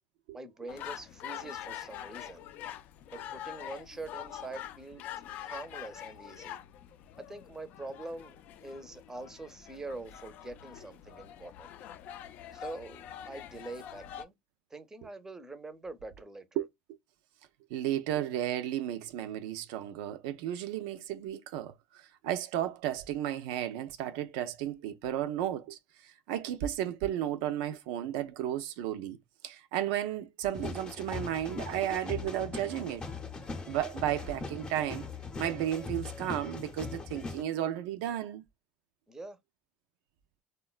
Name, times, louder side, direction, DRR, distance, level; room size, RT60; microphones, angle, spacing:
voice 1, 0.3-2.5 3.1-5.0 5.4-6.6 7.2-11.7 12.5-14.3 14.7-16.6 39.1-39.4, right 2 dB, 15° right, 0.6 m, -44 dB
sound 1, 0.7-14.2, left 11 dB, 60° left, 0.3 m, -45 dB
voice 2, 17.7-29.2 29.4-33.1 33.7-35.1 35.4-38.4, right 11 dB, 80° right, 0.3 m, -33 dB
sound 2, 30.5-37.4, left 4 dB, 30° left, 0.6 m, -40 dB
3.6 x 2.2 x 2.3 m
supercardioid pair, 90°, 3 cm